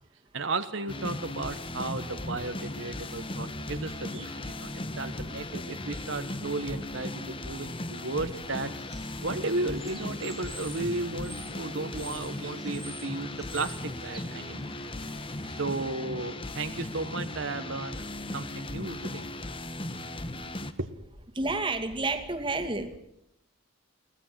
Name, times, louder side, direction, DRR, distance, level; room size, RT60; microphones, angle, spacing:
voice 1, 0.3-4.7 5.0-8.7 9.2-14.8 15.5-18.1 18.3-19.3 20.8-20.9, right 2 dB, 60° right, 7 dB, 1.3 m, -34 dB
sound 1, 0.9-20.7, left 1 dB, 25° left, 1.2 m, -37 dB
Bird / Water, 8.2-15.6, right 1 dB, ahead, 2.7 m, -49 dB
voice 2, 21.4-22.9, right 3 dB, 25° right, 5 dB, 2.2 m, -30 dB
23.0 x 18.0 x 7.6 m, 0.80 s
head